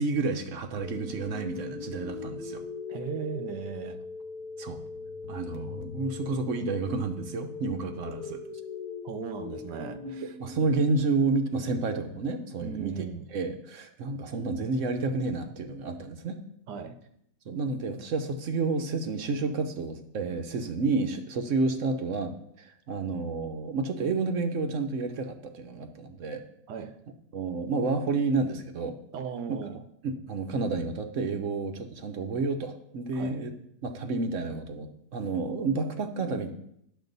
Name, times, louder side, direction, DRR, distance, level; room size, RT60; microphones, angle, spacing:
voice 1, 0.0-2.6 4.6-4.8 5.3-8.4 10.2-13.0 13.3-16.4 17.5-26.4 27.3-29.0 30.0-33.5 33.8-36.5, right 3 dB, 55° right, 6 dB, 1.0 m, -30 dB
sound 1, 0.8-10.8, left 4 dB, 75° left, 1.4 m, -40 dB
voice 2, 2.9-4.0 9.0-10.3 12.6-13.3 16.7-17.0 26.7-26.9 29.1-29.8 33.1-33.4, right 7 dB, 85° right, 8 dB, 1.4 m, -37 dB
10.5 x 6.7 x 4.0 m, 0.73 s
omnidirectional pair, 1.7 m